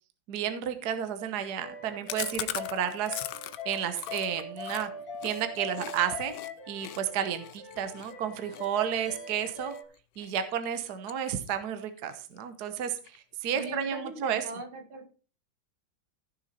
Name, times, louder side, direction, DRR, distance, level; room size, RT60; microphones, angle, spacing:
voice 1, 0.3-3.2 3.6-4.9 5.2-6.3 6.7-9.7 10.2-14.4, right 9 dB, 55° right, 9 dB, 1.5 m, -32 dB
sound 1, 1.6-9.8, left 3 dB, 50° left, 2.5 m, -42 dB
Chewing mastication, 2.1-6.0 6.3-6.5 6.8-9.8 10.2-10.5 10.8-11.7 12.0-12.1 12.4-12.5 12.8-13.3, left 13 dB, 70° left, 1.2 m, -40 dB
voice 2, 13.5-15.1, right 2 dB, 85° right, 5 dB, 2.6 m, -40 dB
15.5 x 6.4 x 4.2 m, 0.37 s
omnidirectional pair, 2.2 m